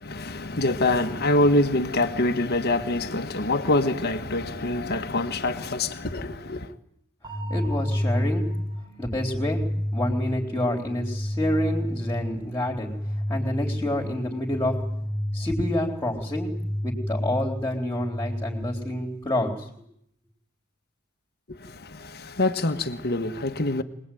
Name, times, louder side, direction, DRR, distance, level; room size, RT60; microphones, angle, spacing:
voice 1, 0.0-6.7 21.5-23.8, left 2 dB, 45° left, 1.6 m, -25 dB
sound 1, 7.2-19.2, equal, 20° right, 3.2 m, -30 dB
voice 2, 7.5-8.5 9.0-9.6 9.9-12.9 13.3-14.7 15.3-16.5 16.8-19.7, left 1 dB, 15° left, 3.8 m, -28 dB
24.5 x 20.0 x 9.3 m
head